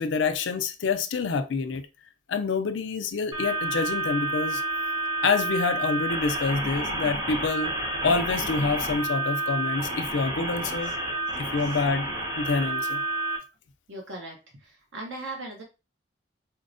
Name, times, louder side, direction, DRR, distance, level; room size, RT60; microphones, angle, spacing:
voice 1, 0.0-1.9 2.3-4.6 5.2-7.7 8.0-10.9 11.4-12.1 12.4-13.0, left 4 dB, 80° left, 0.5 m, -27 dB
sound 1, 3.3-13.4, right 2 dB, 20° right, 0.9 m, -30 dB
voice 2, 10.5-10.9 11.4-11.7 13.9-15.6, right 2 dB, 85° right, 0.7 m, -40 dB
4.4 x 2.0 x 2.5 m
head